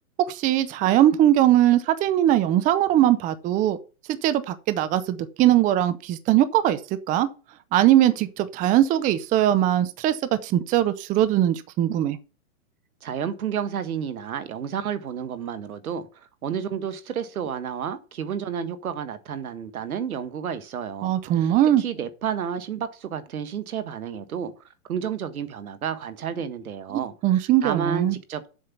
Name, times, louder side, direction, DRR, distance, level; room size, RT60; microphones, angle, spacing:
voice 1, 0.3-3.8 4.1-6.8 7.1-7.3 7.7-12.2 21.0-21.8 26.9-28.2, right 12 dB, 20° right, 0.6 m, -20 dB
voice 2, 13.0-24.5 24.8-28.5, right 8 dB, 80° right, 1.6 m, -31 dB
7.9 x 5.5 x 7.0 m
hypercardioid pair, 130°, 42 cm